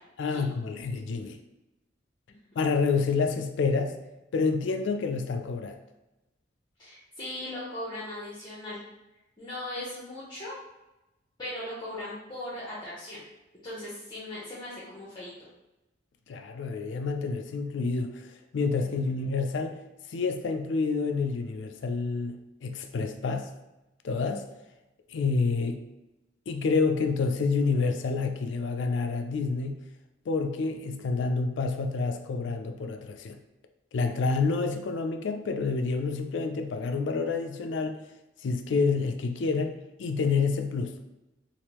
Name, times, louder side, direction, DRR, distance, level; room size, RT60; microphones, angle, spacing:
voice 1, 0.2-1.4 2.6-3.9 4.3-5.8 16.3-18.3 18.5-19.8 20.1-23.5 24.0-24.4 25.1-25.8 26.5-29.7 30.3-33.4 33.9-38.0 38.4-41.0, left 4 dB, 70° left, 5 dB, 0.4 m, -28 dB
voice 2, 6.8-8.8 9.4-10.6 11.4-13.2 13.6-15.5 18.8-19.3, left 1 dB, 25° left, -10 dB, 0.8 m, -39 dB
3.4 x 2.5 x 2.9 m, 0.97 s
head